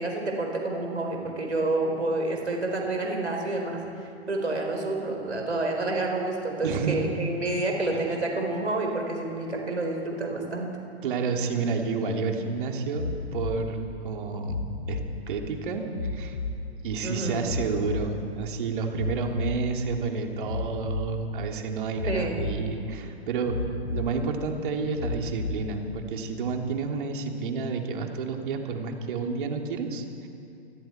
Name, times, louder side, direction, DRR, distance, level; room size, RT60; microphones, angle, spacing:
voice 1, 0.0-3.8 4.3-10.7 17.0-17.5 22.1-22.5, right 2 dB, 80° right, 1 dB, 4.4 m, -29 dB
voice 2, 6.6-7.0 11.0-15.0 15.3-16.4 16.8-23.6 23.9-30.3, right 4 dB, 50° right, 2 dB, 3.1 m, -30 dB
sound 1, 12.9-13.5 14.4-15.0 15.9-16.5 17.4-18.0 19.0-19.5 20.5-21.0 22.0-22.6 23.5-24.1 25.0-25.6 26.5-26.6, left 4 dB, 75° left, 2.0 m, -31 dB
28.5 x 20.0 x 4.6 m, 2.5 s
figure-of-eight pair, 120°, 33 cm